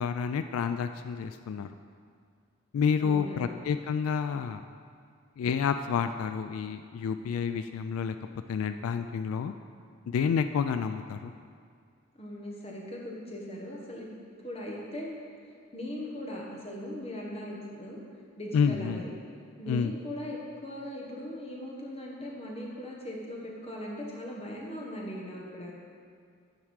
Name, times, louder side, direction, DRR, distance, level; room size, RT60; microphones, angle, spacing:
voice 1, 0.0-1.7 2.7-4.6 5.4-9.5 10.1-11.3 18.5-19.0 19.7-19.9, left 6 dB, 85° left, 10 dB, 0.3 m, -29 dB
voice 2, 3.0-3.6 12.2-14.1 14.4-15.1 15.7-18.0 18.4-19.1 19.6-25.7, left 1 dB, 25° left, -3 dB, 1.3 m, -39 dB
9.2 x 4.7 x 6.4 m, 2.2 s
head